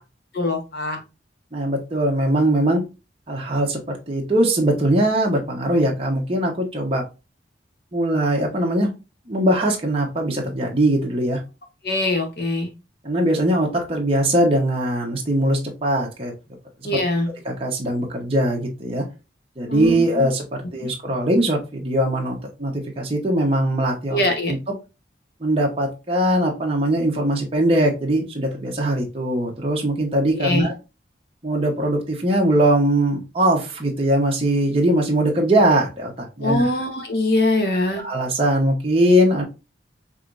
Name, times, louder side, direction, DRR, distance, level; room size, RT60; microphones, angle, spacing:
voice 1, 0.3-1.0 11.8-12.7 16.8-17.3 19.7-20.0 20.8-20.9 24.1-24.5 30.4-30.7 36.4-38.0, left 2 dB, 60° left, 3 dB, 1.0 m, -22 dB
voice 2, 1.5-2.8 3.3-7.0 7.9-8.9 9.3-11.4 13.0-16.3 16.8-17.0 17.4-19.0 19.6-24.2 24.5-24.7 25.4-30.7 31.4-36.7 38.0-39.4, right 1 dB, 30° right, -1 dB, 0.9 m, -21 dB
5.0 x 3.0 x 2.5 m, 0.27 s
head